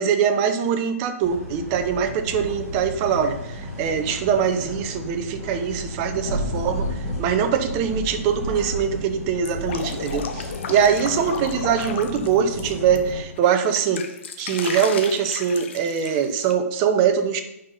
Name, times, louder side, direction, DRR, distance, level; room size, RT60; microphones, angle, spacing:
voice 1, 0.0-6.9 7.2-14.0 14.4-17.4, right 7 dB, 25° right, 7 dB, 0.8 m, -22 dB
sound 1, 1.2-13.2, equal, ahead, 2.4 m, -32 dB
Drip, 9.4-13.0 13.4-16.5, left 7 dB, 50° left, 1.0 m, -34 dB
8.8 x 5.6 x 5.4 m, 0.85 s
hypercardioid pair, 160°, 8 cm